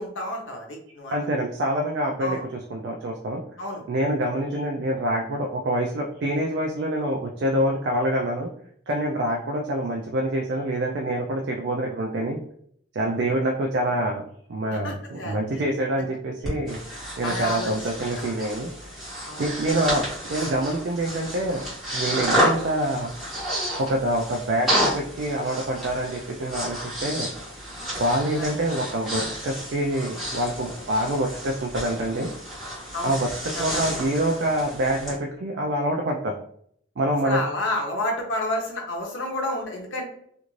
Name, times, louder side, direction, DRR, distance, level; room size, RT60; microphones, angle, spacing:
voice 1, 0.0-1.2 2.2-2.4 3.6-3.8 13.1-13.2 14.7-15.6 16.0-16.1 17.2-17.7 19.2-19.8 28.3-28.5 32.9-33.2 33.6-33.8 37.2-40.0, left 1 dB, 85° left, 1 dB, 0.8 m, -30 dB
voice 2, 1.1-3.4 3.9-8.5 8.9-12.4 12.9-14.2 14.5-16.8 17.2-18.9 19.4-20.0 20.3-21.6 21.9-23.1 23.8-27.3 28.0-32.3 33.0-36.4 37.0-37.4, right 1 dB, 65° right, 1 dB, 0.3 m, -26 dB
Breathing, 16.4-35.2, equal, ahead, 1.2 m, -31 dB
2.5 x 2.5 x 3.0 m, 0.66 s
head